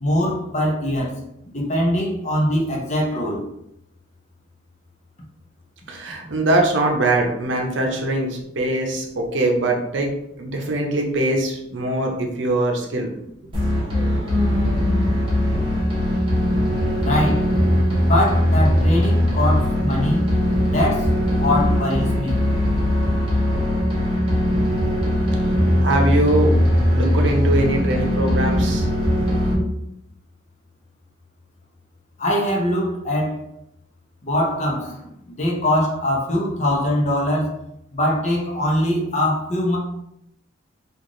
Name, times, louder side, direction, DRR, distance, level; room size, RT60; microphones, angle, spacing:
voice 1, 0.0-1.2 1.4-3.5 17.0-17.5 18.0-20.2 20.7-22.4 32.2-33.4 34.2-37.5 37.9-39.8, left 1 dB, 35° left, -1 dB, 0.8 m, -22 dB
voice 2, 5.9-10.1 10.4-13.1 25.8-26.5 26.9-28.9, right 1 dB, 70° right, 1 dB, 0.7 m, -22 dB
sound 1, 13.5-29.5, equal, 25° right, 1.1 m, -20 dB
3.2 x 2.5 x 3.7 m, 0.79 s
head